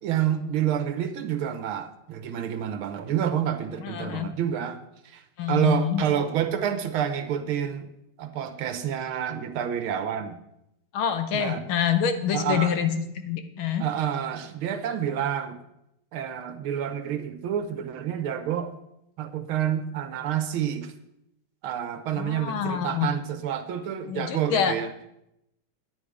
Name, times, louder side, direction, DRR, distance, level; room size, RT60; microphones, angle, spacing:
voice 1, 0.0-7.9 8.2-10.4 11.3-11.6 12.3-12.8 13.8-15.6 16.1-18.7 19.2-20.9 21.6-24.9, right 9 dB, 90° right, 9 dB, 1.8 m, -28 dB
voice 2, 3.8-4.3 5.4-6.1 10.9-13.8 22.2-23.1 24.1-24.8, left 8 dB, 80° left, 9 dB, 1.8 m, -26 dB
10.5 x 9.2 x 4.9 m, 0.82 s
omnidirectional pair, 2.2 m